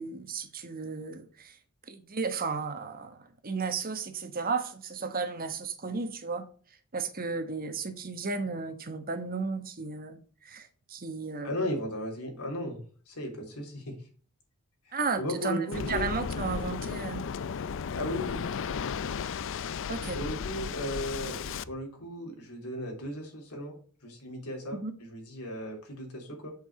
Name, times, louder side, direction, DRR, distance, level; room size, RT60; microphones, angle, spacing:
voice 1, 0.0-1.5 1.9-6.5 6.9-11.6 14.9-17.2 19.9-20.2 24.7-24.9, right 4 dB, 40° right, 1.3 m, -34 dB
voice 2, 11.4-14.0 14.9-16.1 17.9-18.4 20.0-23.7 24.0-26.5, equal, 90° left, 3.6 m, -36 dB
Waves surf, 15.7-21.6, left 6 dB, 60° left, 0.4 m, -34 dB
7.7 x 7.0 x 4.9 m
head